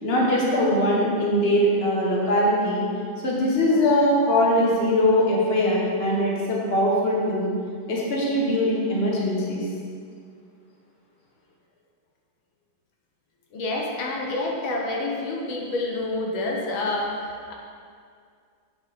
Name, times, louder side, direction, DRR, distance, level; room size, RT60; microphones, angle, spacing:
voice 1, 0.0-2.8 3.2-7.5 7.9-9.7, left 1 dB, 30° left, -4 dB, 1.5 m, -21 dB
voice 2, 13.5-17.5, left 2 dB, 80° left, -1 dB, 1.8 m, -28 dB
8.3 x 6.7 x 4.3 m, 2.2 s
omnidirectional pair, 2.2 m